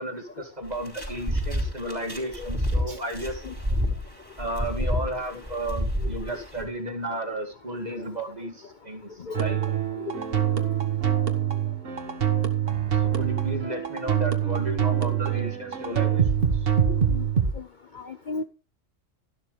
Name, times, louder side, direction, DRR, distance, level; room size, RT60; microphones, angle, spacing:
voice 1, 0.0-3.4 4.4-9.6 13.0-16.5, right 1 dB, 30° right, 3 dB, 2.5 m, -33 dB
sound 1, 0.7-6.6, equal, 15° right, 4.7 m, -29 dB
sound 2, 9.3-17.5, right 9 dB, 50° right, 1.5 m, -24 dB
Piano, 9.3-16.2, right 5 dB, 70° right, 1.9 m, -38 dB
voice 2, 16.9-17.2 17.9-18.4, left 3 dB, 45° left, 9 dB, 0.7 m, -34 dB
13.0 x 12.0 x 3.3 m, 0.33 s
omnidirectional pair, 1.3 m